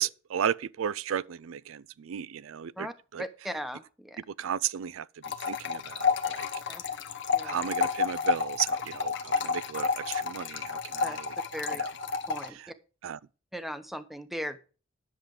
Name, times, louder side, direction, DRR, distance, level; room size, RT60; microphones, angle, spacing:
voice 1, 0.0-2.9 3.1-3.2 4.4-5.0 5.5-6.5 7.4-11.3 11.8-11.9 13.0-13.2, right 9 dB, 90° right, 0.4 m, -34 dB
voice 2, 3.2-4.2 6.7-6.8 7.3-7.6 11.0-11.2 11.5-11.8 12.3-12.7 13.5-14.6, equal, ahead, 0.9 m, -38 dB
sound 1, 5.2-12.5, left 5 dB, 60° left, 1.0 m, -30 dB
10.5 x 7.2 x 5.0 m
head